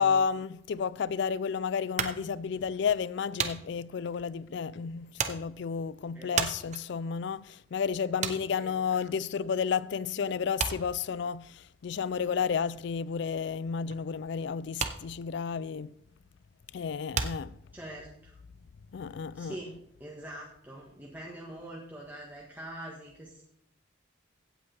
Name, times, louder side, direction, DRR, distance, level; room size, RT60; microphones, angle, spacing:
voice 1, 0.0-15.9 16.7-17.6 18.9-19.6, left 6 dB, 60° left, 0.4 m, -31 dB
sound 1, 2.0-9.8 10.1-18.1, right 6 dB, 35° right, 0.8 m, -37 dB
voice 2, 8.2-9.0 17.7-18.4 19.3-19.7 20.0-23.4, right 1 dB, 10° right, 1.5 m, -44 dB
16.0 x 8.7 x 3.4 m
head